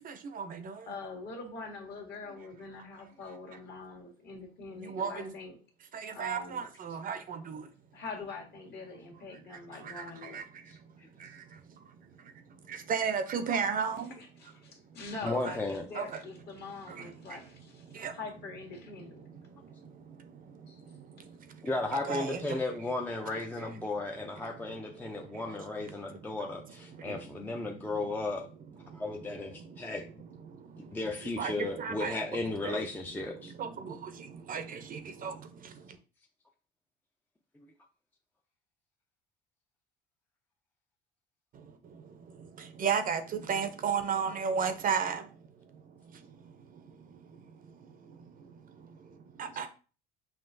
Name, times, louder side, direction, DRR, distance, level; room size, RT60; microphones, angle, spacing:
voice 1, 0.0-0.9 4.8-5.3 5.9-7.7 9.7-10.7 11.2-11.8 12.2-12.3 12.6-14.1 15.3-15.6 15.9-16.2 16.9-17.4 17.8-18.2 19.4-21.7 22.1-22.6 23.3-23.7 25.0-25.4 26.1-26.2 26.9-27.7 28.9-29.0 29.6-29.9 30.5-31.0 31.4-32.2 32.6-32.9 33.4-36.0 41.5-45.3 45.7-45.8 46.1-49.7, right 6 dB, 40° right, 0.6 m, -36 dB
voice 2, 0.9-5.6 6.1-6.7 7.9-10.4 14.1-19.3 20.7-20.8, left 4 dB, 50° left, 1.5 m, -44 dB
voice 3, 15.2-15.9 21.6-28.5 28.9-30.0 30.9-33.5, left 2 dB, 10° left, 0.4 m, -35 dB
5.8 x 2.4 x 2.6 m
supercardioid pair, 95°, 21 cm